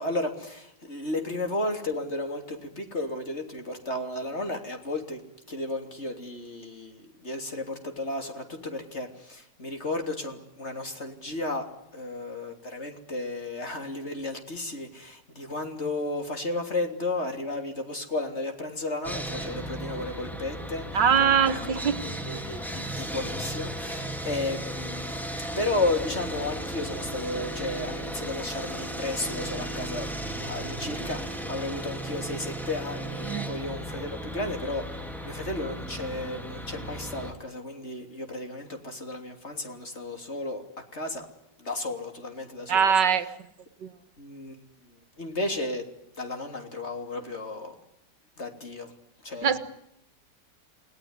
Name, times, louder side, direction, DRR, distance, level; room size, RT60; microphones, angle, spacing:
voice 1, 0.0-5.2 5.5-11.7 11.9-20.9 21.2-21.6 22.2-40.6 40.9-41.3 41.6-42.9 44.2-44.6 45.2-45.8 46.2-47.7 48.4-48.9 49.2-49.6, left 2 dB, 40° left, 5 dB, 3.5 m, -33 dB
Sawing, 19.0-37.3, right 1 dB, ahead, 2.3 m, -35 dB
voice 2, 20.9-22.0 33.2-33.5 42.7-43.3 43.8-43.9 49.4-49.6, right 7 dB, 85° right, 12 dB, 2.3 m, -22 dB
29.0 x 19.0 x 9.7 m, 0.81 s
omnidirectional pair, 1.8 m